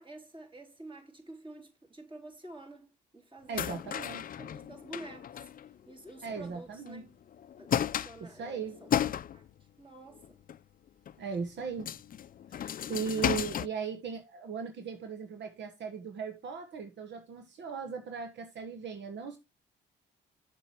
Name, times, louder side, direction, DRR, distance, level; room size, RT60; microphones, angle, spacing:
voice 1, 0.0-2.9 3.1-5.5 5.9-7.1 7.6-9.4 9.8-10.4, right 2 dB, 25° right, 3.8 m, -49 dB
sound 1, 3.5-6.6 6.9-7.0 7.3-9.6 10.2-10.6 11.1-11.2 11.6-13.7, left 10 dB, 45° left, 0.5 m, -34 dB
voice 2, 3.5-4.2 6.2-7.0 8.2-8.8 11.2-12.0 12.5-19.4, right 6 dB, 65° right, 1.3 m, -38 dB
7.5 x 7.3 x 4.5 m
cardioid pair, 90°, 20 cm